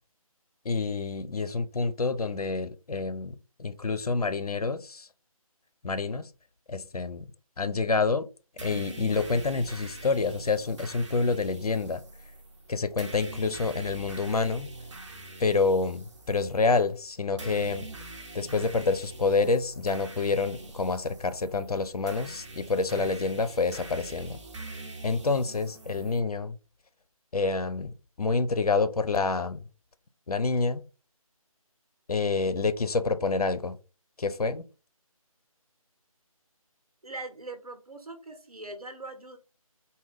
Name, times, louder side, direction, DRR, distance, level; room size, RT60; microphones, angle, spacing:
voice 1, 0.6-5.1 5.8-6.3 6.7-7.3 7.6-8.3 8.6-12.0 12.7-14.7 15.4-17.9 18.3-24.4 25.0-26.5 27.3-29.6 30.3-30.8 32.1-33.8 34.2-34.6, left 4 dB, 85° left, 0.5 m, -28 dB
sound 1, 8.6-26.2, right 2 dB, 50° right, 1.0 m, -44 dB
voice 2, 37.0-39.4, right 2 dB, 80° right, 1.1 m, -41 dB
3.7 x 2.2 x 3.4 m
figure-of-eight pair, 155°, 19 cm